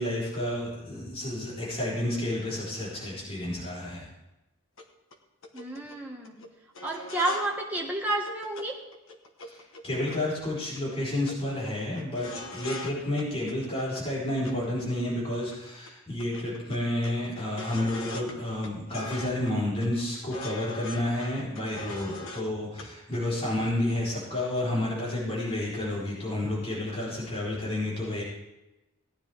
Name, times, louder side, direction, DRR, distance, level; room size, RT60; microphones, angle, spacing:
voice 1, 0.0-4.1 9.4-9.6 9.8-28.2, left 1 dB, 25° left, -8 dB, 3.9 m, -30 dB
sound 1, 4.8-4.9 5.1-5.2 5.4-6.0 6.2-6.5 6.7-7.5 7.8-7.9 8.1-8.7 8.9-10.5 10.8-11.0 11.3-11.4 11.6-12.9 13.2-14.0 14.4-15.6 15.9-16.0 16.2-18.3 18.6-19.5 19.8-22.5 22.8-22.9 23.1-23.7 24.0-24.1, left 2 dB, 75° left, 1.3 m, -41 dB
voice 2, 5.5-6.5 6.8-8.8, right 1 dB, 10° right, -2 dB, 1.5 m, -30 dB
17.5 x 10.0 x 3.5 m, 0.98 s
head